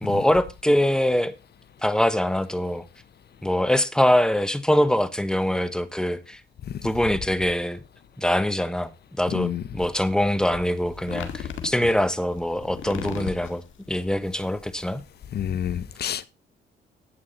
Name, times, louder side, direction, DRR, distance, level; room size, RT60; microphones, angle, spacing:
voice 1, 0.0-1.3 1.8-2.9 3.4-6.4 6.8-7.8 8.2-8.9 9.2-15.0, left 1 dB, 5° left, 1.1 m, -23 dB
voice 2, 9.3-9.6 15.3-16.3, left 9 dB, 55° left, 0.9 m, -27 dB
sound 1, 9.8-15.4, left 8 dB, 80° left, 1.8 m, -37 dB
11.5 x 8.6 x 3.8 m
cardioid pair, 90°, 20 cm